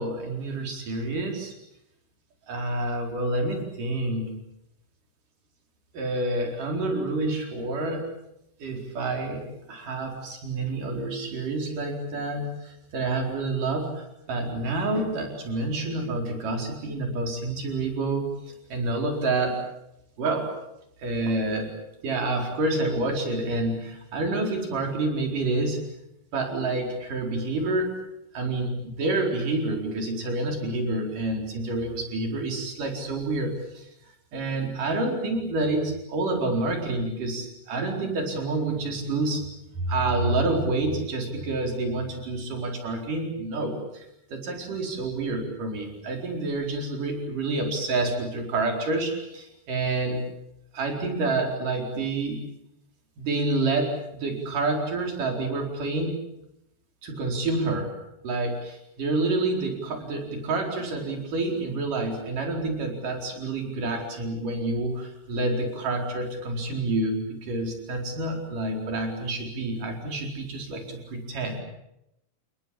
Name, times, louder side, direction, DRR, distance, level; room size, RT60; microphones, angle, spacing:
voice 1, 0.0-1.5 2.5-4.3 5.9-8.0 8.6-18.3 18.7-19.6 20.2-20.5 21.0-21.7 22.0-25.8 26.3-28.0 28.3-33.9 34.3-39.5 39.8-44.1 44.3-50.3 50.7-52.4 53.2-56.2 57.0-57.9 58.2-71.6, right 2 dB, 55° right, 3 dB, 5.9 m, -28 dB
29.5 x 19.5 x 8.6 m, 0.84 s
omnidirectional pair, 4.5 m